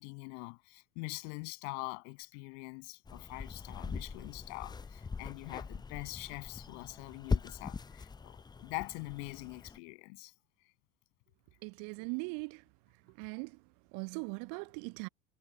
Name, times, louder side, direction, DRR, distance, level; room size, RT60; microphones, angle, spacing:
voice 1, 0.0-10.3, left 34 dB, 55° left, 7.2 m, -44 dB
sound 1, 3.1-9.8, left 5 dB, 10° left, 0.6 m, -40 dB
voice 2, 11.6-12.6 13.1-13.6 13.9-15.1, right 36 dB, 50° right, 1.2 m, -40 dB
figure-of-eight pair, 65°, 41 cm